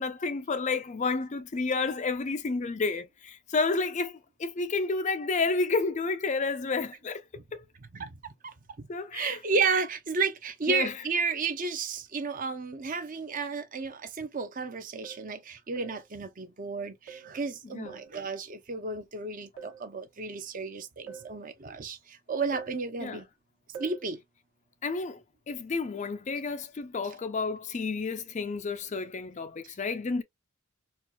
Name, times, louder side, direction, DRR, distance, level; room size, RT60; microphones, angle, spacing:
voice 1, 0.0-7.2 7.5-7.6 8.9-9.4 10.7-10.9 17.7-18.0 23.0-23.2 24.8-25.2 25.5-30.2, left 4 dB, 30° left, 0.4 m, -30 dB
voice 2, 8.4-8.9 9.1-23.2 23.8-24.2 29.6-29.7, right 4 dB, 35° right, 0.6 m, -32 dB
sound 1, 14.0-14.1 15.0-15.3 15.8-16.1 17.1-17.4 17.9-18.2 19.6-19.9 21.1-21.4 22.5-22.8 23.7-24.1, right 7 dB, 60° right, 1.2 m, -44 dB
4.3 x 2.3 x 2.2 m
head